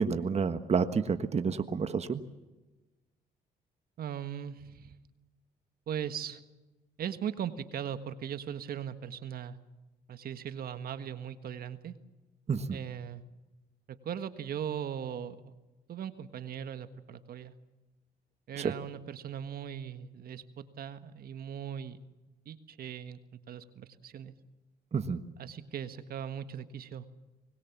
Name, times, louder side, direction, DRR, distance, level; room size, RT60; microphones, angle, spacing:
voice 1, 0.0-2.2 12.5-12.8 18.6-18.7 24.9-25.2, right 5 dB, 40° right, 10 dB, 1.4 m, -29 dB
voice 2, 4.0-4.9 5.9-6.4 7.0-9.6 10.1-11.9 12.7-13.2 13.9-15.4 15.9-17.5 18.5-22.0 22.4-23.2 23.5-24.3 25.4-27.0, right 9 dB, 65° right, 11 dB, 1.6 m, -39 dB
25.0 x 21.0 x 7.3 m, 1.1 s
supercardioid pair, 75°, 17 cm